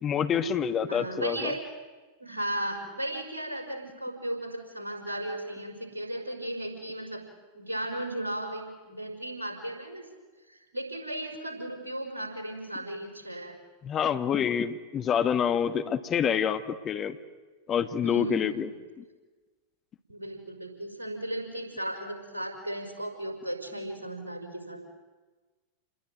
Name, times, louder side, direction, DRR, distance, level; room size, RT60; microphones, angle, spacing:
voice 1, 0.0-1.5 13.8-17.2 17.7-18.7 19.0-19.1, left 8 dB, 30° left, 9 dB, 1.6 m, -27 dB
voice 2, 0.9-1.6 2.2-7.2 7.5-10.0 10.5-13.5 18.0-18.7 20.1-25.0, right 1 dB, 80° right, 4 dB, 5.4 m, -35 dB
29.0 x 21.0 x 9.3 m, 1.3 s
figure-of-eight pair, 90°, 0 cm